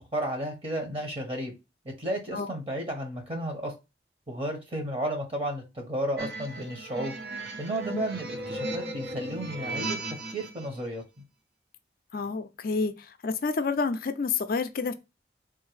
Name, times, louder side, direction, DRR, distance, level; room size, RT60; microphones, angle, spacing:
voice 1, 0.1-1.5 1.8-3.7 4.3-7.1 7.6-10.0 10.3-11.0, right 1 dB, 30° right, 1.0 m, -33 dB
sound 1, 6.2-10.7, right 2 dB, 65° right, 0.7 m, -36 dB
voice 2, 12.1-12.9 13.2-14.9, left 4 dB, 50° left, 0.4 m, -29 dB
3.7 x 2.7 x 3.2 m
head